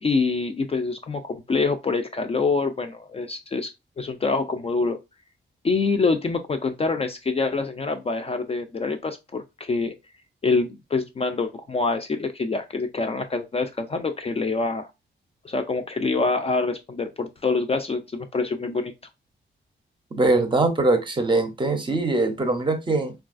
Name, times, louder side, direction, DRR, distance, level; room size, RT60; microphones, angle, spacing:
voice 1, 0.0-3.7 4.0-5.0 5.6-10.0 10.4-14.9 15.4-18.9, left 4 dB, 30° left, 0.4 m, -25 dB
voice 2, 20.1-23.1, right 2 dB, 25° right, 0.6 m, -22 dB
3.9 x 2.3 x 2.4 m
wide cardioid pair, 135°, 20 cm